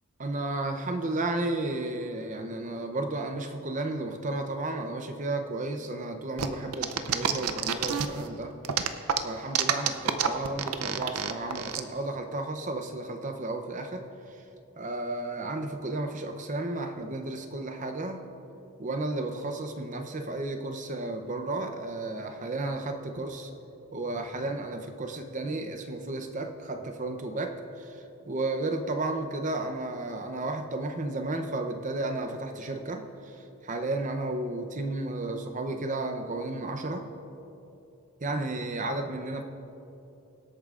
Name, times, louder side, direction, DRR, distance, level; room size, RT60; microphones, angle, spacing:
voice 1, 0.2-8.5 9.2-14.4 14.7-18.2 18.8-23.5 23.9-37.1 38.2-39.4, right 2 dB, 35° right, 5 dB, 0.7 m, -33 dB
sound 1, 6.4-8.3 8.6-11.8, right 8 dB, 80° right, 0.6 m, -28 dB
24.5 x 8.5 x 2.5 m, 3.0 s
head